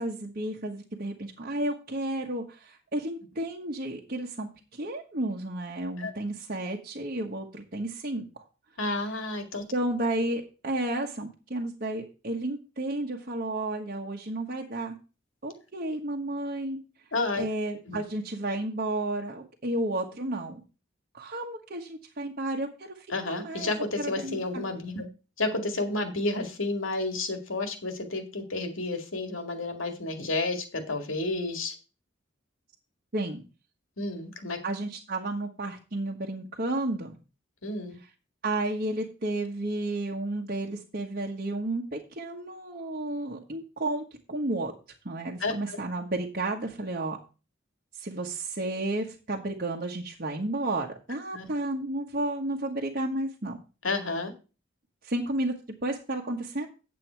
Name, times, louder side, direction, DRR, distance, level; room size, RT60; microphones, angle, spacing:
voice 1, 0.0-8.3 9.7-15.0 15.4-16.8 17.3-20.6 21.1-23.7 24.0-24.6 33.1-33.4 34.6-37.2 38.4-44.7 45.0-47.2 48.0-53.6 55.0-55.5 55.8-56.7, right 1 dB, 45° right, 0 dB, 1.2 m, -32 dB
voice 2, 8.8-9.6 17.1-17.4 17.9-18.0 23.1-25.1 25.4-31.7 34.0-34.6 37.6-38.0 45.4-45.5 51.3-51.5 53.8-54.3, left 2 dB, 75° left, 7 dB, 2.2 m, -31 dB
9.1 x 7.6 x 4.6 m, 0.32 s
head